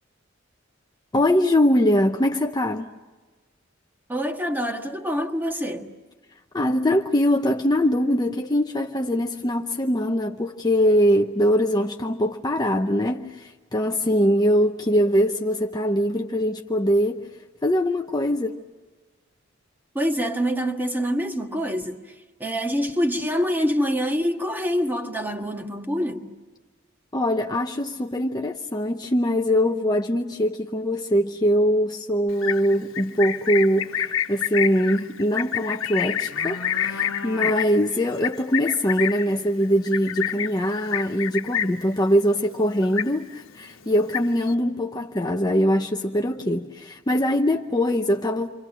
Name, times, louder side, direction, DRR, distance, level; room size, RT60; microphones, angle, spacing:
voice 1, 1.1-2.9 6.5-17.3 17.6-18.6 27.1-48.5, equal, 20° left, 0.8 m, -22 dB
voice 2, 4.1-5.9 19.9-22.0 22.4-26.3, equal, 10° right, 1.6 m, -25 dB
Livestock farm animals working animals, 32.3-41.9 42.2-42.6 42.8-43.5 43.8-44.5, left 9 dB, 90° left, 1.2 m, -28 dB
29.0 x 25.5 x 6.4 m
head